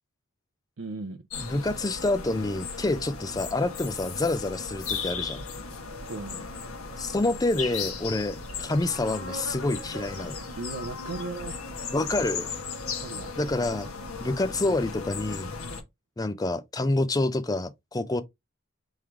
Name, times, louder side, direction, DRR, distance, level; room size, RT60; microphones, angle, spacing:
voice 1, 0.8-1.2 6.0-6.5 10.6-11.6 12.9-13.4, right 3 dB, 65° right, 0.6 m, -37 dB
sound 1, 1.3-15.8, left 4 dB, 75° left, 1.3 m, -36 dB
voice 2, 1.4-5.4 7.0-10.4 11.9-12.5 13.4-13.9 14.2-15.5 16.2-18.2, left 2 dB, 15° left, 0.4 m, -27 dB
3.7 x 3.1 x 4.6 m
head